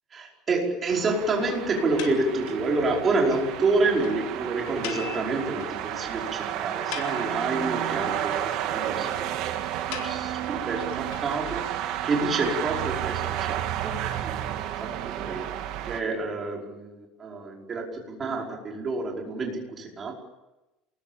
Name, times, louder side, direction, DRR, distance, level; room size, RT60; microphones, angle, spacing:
voice 1, 0.1-9.1 9.8-13.5 13.8-13.9 14.2-14.4 14.7-14.9 15.2-15.5 15.8-20.1, right 3 dB, 20° right, 0 dB, 5.2 m, -28 dB
sound 1, 0.9-16.0, right 11 dB, 55° right, 3.0 m, -31 dB
sound 2, 2.0-2.7 3.0-3.1 3.3-3.4 3.7-3.8 4.0-4.1 4.8-5.8 6.2-6.3 6.7-7.7 9.9-11.9, left 10 dB, 90° left, 4.3 m, -40 dB
28.0 x 20.5 x 7.3 m, 0.99 s
cardioid pair, 170°, 0 cm